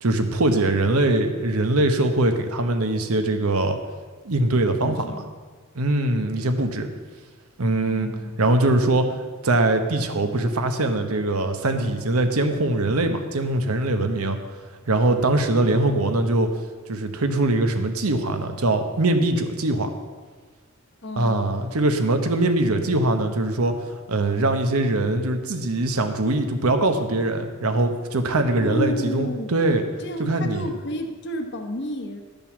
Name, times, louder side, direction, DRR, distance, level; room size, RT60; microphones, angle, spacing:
voice 1, 0.0-3.8 4.2-5.2 5.8-6.9 7.6-8.1 8.4-9.1 9.4-14.4 14.9-16.5 16.9-19.9 21.2-23.8 24.1-29.8 30.2-30.7, right 2 dB, 80° right, 7 dB, 1.0 m, -22 dB
voice 2, 4.8-5.3 7.8-8.4 21.0-21.5 28.6-29.5 30.0-32.2, equal, 50° left, 6 dB, 1.0 m, -31 dB
10.5 x 5.3 x 7.2 m, 1.5 s
head